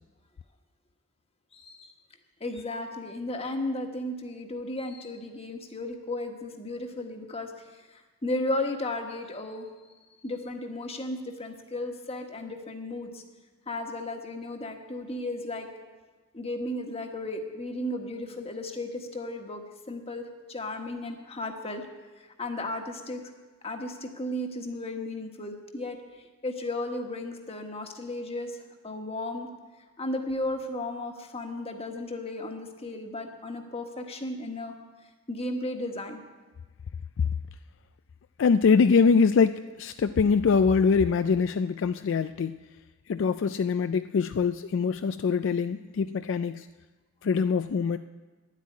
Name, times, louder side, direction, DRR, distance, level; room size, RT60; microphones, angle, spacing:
voice 1, 1.5-1.9 2.4-9.7 10.2-13.2 13.7-15.7 16.3-20.2 20.5-21.9 22.2-23.2 23.6-29.5 30.0-34.7 35.3-36.2, left 1 dB, 30° left, 4 dB, 1.3 m, -34 dB
voice 2, 38.4-42.5 43.1-46.7 47.2-48.0, left 5 dB, 65° left, 10 dB, 0.4 m, -23 dB
11.5 x 8.3 x 9.6 m, 1.3 s
head